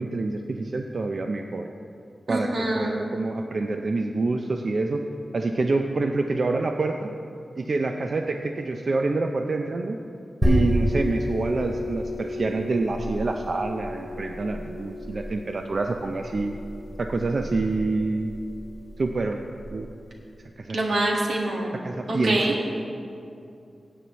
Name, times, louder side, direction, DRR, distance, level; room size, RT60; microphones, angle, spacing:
voice 1, 0.0-1.7 2.3-5.0 5.3-7.1 7.6-10.0 10.4-16.6 17.0-18.3 19.0-19.4 19.7-19.9 20.6-20.8 21.8-22.4, right 3 dB, 55° right, 4 dB, 0.5 m, -27 dB
voice 2, 2.3-2.9 20.7-21.7 22.1-22.5, right 1 dB, 85° right, -2 dB, 1.7 m, -25 dB
sound 1, 10.4-19.8, equal, 15° right, 2.7 m, -30 dB
16.0 x 8.5 x 3.1 m, 2.5 s
wide cardioid pair, 100°, 0 cm